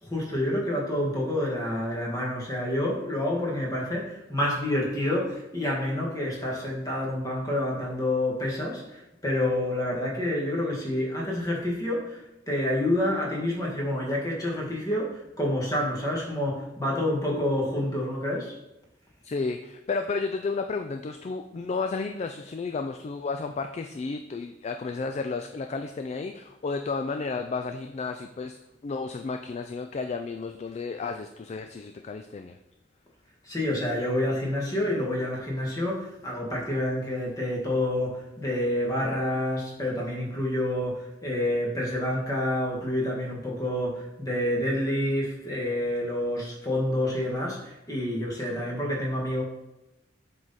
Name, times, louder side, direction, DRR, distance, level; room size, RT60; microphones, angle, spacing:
voice 1, 0.0-18.5 33.4-49.4, left 1 dB, 20° left, -2 dB, 1.5 m, -28 dB
voice 2, 19.2-32.6, left 4 dB, 35° left, 6 dB, 0.3 m, -32 dB
7.6 x 3.8 x 4.1 m, 0.94 s
head